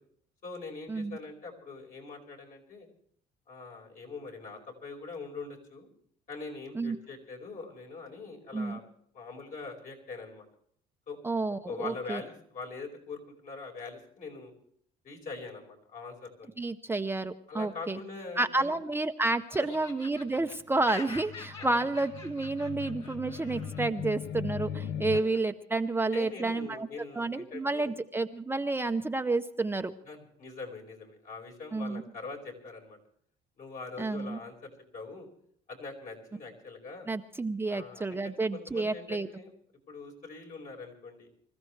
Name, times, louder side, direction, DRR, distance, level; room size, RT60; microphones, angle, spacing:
voice 1, 0.4-2.9 3.5-5.9 6.3-8.8 9.1-10.5 11.1-11.2 11.5-14.5 15.0-16.5 17.5-18.7 21.6-21.8 25.1-25.2 26.1-27.9 30.0-33.0 33.6-35.3 35.7-37.1 37.7-39.5 39.9-41.3, left 4 dB, 55° left, 0 dB, 5.1 m, -43 dB
voice 2, 11.2-12.2 16.6-18.0 18.4-26.9 27.1-29.9 31.7-32.0 34.0-34.4 37.1-39.3, right 3 dB, 15° right, 7 dB, 0.6 m, -30 dB
Laughter, 18.3-19.1 19.5-23.9, left 4 dB, 35° left, 3.3 m, -46 dB
sound 1, 21.2-25.2, left 8 dB, 75° left, 0.7 m, -38 dB
25.0 x 15.0 x 3.3 m, 0.64 s
cardioid pair, 110°, 17 cm